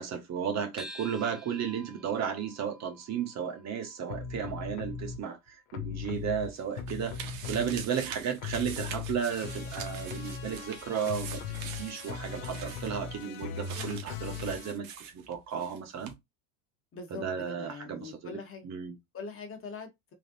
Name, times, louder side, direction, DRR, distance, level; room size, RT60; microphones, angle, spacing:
voice 1, 0.0-14.9 15.1-16.1 17.1-18.4 18.6-19.0, right 7 dB, 40° right, 1.4 m, -34 dB
sound 1, 0.8-5.5, right 1 dB, ahead, 0.8 m, -50 dB
sound 2, 4.1-5.2 5.7-8.1 8.4-14.7, left 7 dB, 70° left, 1.0 m, -39 dB
sound 3, 6.1-15.8 16.0-16.1, right 8 dB, 65° right, 1.3 m, -44 dB
voice 2, 16.9-18.7 19.1-20.1, left 4 dB, 30° left, 1.3 m, -42 dB
3.8 x 3.3 x 2.6 m
supercardioid pair, 100°, 42 cm